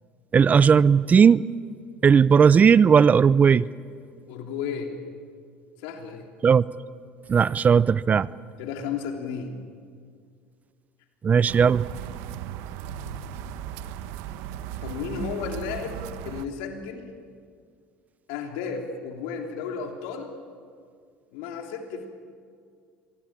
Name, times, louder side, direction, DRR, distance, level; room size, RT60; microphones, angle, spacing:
voice 1, 0.3-1.4 2.0-3.7 6.4-6.7 7.3-8.3 11.2-11.8, right 6 dB, 30° right, 19 dB, 0.6 m, -17 dB
voice 2, 4.3-4.9 5.8-6.3 8.6-9.6 14.8-17.1 18.3-20.3 21.3-22.1, left 6 dB, 80° left, 3 dB, 3.4 m, -33 dB
sound 1, 11.5-16.5, right 10 dB, 75° right, 1.2 m, -36 dB
26.0 x 21.0 x 8.9 m, 2.2 s
supercardioid pair, 90°, 5 cm